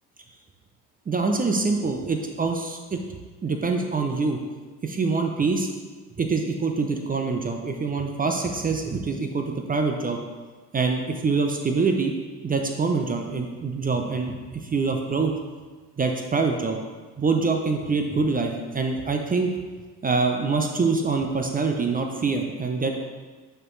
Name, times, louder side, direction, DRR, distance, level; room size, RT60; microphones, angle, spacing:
voice 1, 1.1-3.0 3.4-4.4 4.8-5.7 6.2-10.2 10.7-12.1 12.4-15.3 16.0-16.8 17.2-19.5 20.0-23.0, right 4 dB, 20° right, 4 dB, 0.6 m, -25 dB
8.6 x 4.4 x 3.2 m, 1.4 s
figure-of-eight pair, 55°, 46 cm